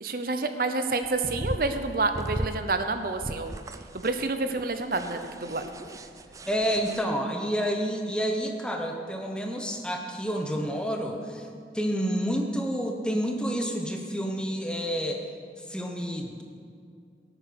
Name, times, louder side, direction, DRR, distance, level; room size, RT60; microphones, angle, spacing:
voice 1, 0.0-3.6 4.0-5.7, right 3 dB, 55° right, 8 dB, 0.8 m, -28 dB
sound 1, 1.0-7.0, right 1 dB, 20° right, 0.5 m, -37 dB
voice 2, 6.5-11.5 11.7-15.2 15.7-16.4, equal, 5° left, 2 dB, 1.1 m, -29 dB
18.0 x 9.1 x 6.1 m, 2.3 s
head